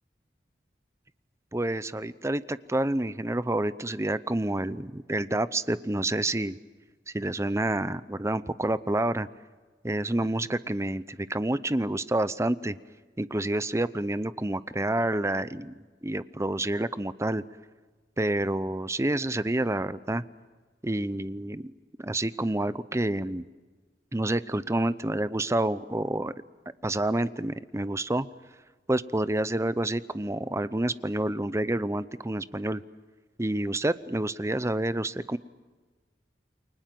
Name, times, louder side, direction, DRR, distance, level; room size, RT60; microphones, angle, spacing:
voice 1, 1.5-6.6 7.1-9.3 9.8-12.8 13.2-15.7 16.0-17.4 18.2-20.2 20.8-21.7 22.0-23.4 24.1-26.3 26.8-28.3 28.9-32.8 33.4-35.4, right 1 dB, 15° right, 15 dB, 0.7 m, -28 dB
29.0 x 24.0 x 7.7 m, 1.3 s
head